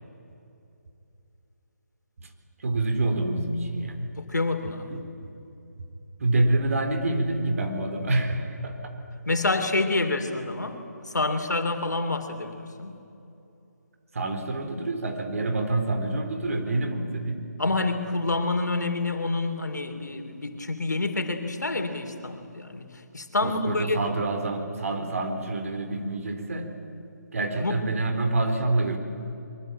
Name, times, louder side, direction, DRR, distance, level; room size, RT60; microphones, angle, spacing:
voice 1, 2.6-4.1 4.9-5.0 6.2-8.9 14.1-17.4 23.4-26.7 27.3-29.0, right 2 dB, 50° right, 6 dB, 4.1 m, -27 dB
voice 2, 4.1-4.9 9.3-12.9 17.6-22.9 23.1-24.0 27.6-27.8, left 2 dB, 75° left, 7 dB, 3.1 m, -27 dB
24.5 x 23.0 x 9.0 m, 2.8 s
figure-of-eight pair, 155°, 9 cm